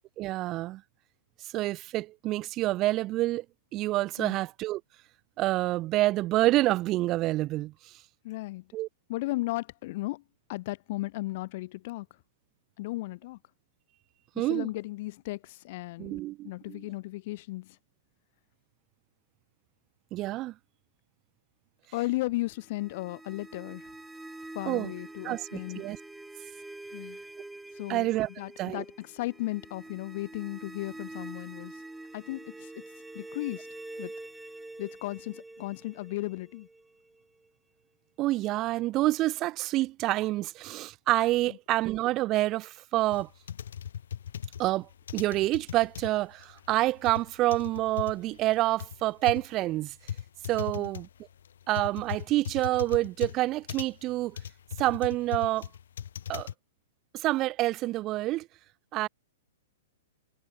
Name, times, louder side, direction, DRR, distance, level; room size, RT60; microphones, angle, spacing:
voice 1, 0.2-0.8 1.4-3.4 3.7-4.8 5.4-7.9 8.7-8.9 14.4-14.7 16.0-16.8 20.1-20.5 24.7-24.9 25.2-26.0 27.9-28.3 28.6-28.8 38.2-43.3 44.6-49.9 50.5-51.1 51.7-54.4 54.8-55.7 56.3-56.5 57.1-58.5 58.9-59.1, right 17 dB, 35° right, 0.4 m, -28 dB
voice 2, 8.2-8.7 9.1-10.2 10.5-12.1 12.8-13.4 14.4-17.8 21.9-23.9 24.5-25.8 26.9-27.2 27.7-28.1 28.4-31.8 32.1-32.8 33.1-33.7 34.0-34.1 34.8-36.7 41.5-41.6 50.8-50.9, left 20 dB, 50° left, 0.7 m, -35 dB
sound 1, 22.5-37.5, right 2 dB, 5° right, 1.2 m, -46 dB
sound 2, 43.1-56.5, left 9 dB, 75° left, 2.1 m, -39 dB
hypercardioid pair, 125°, 0 cm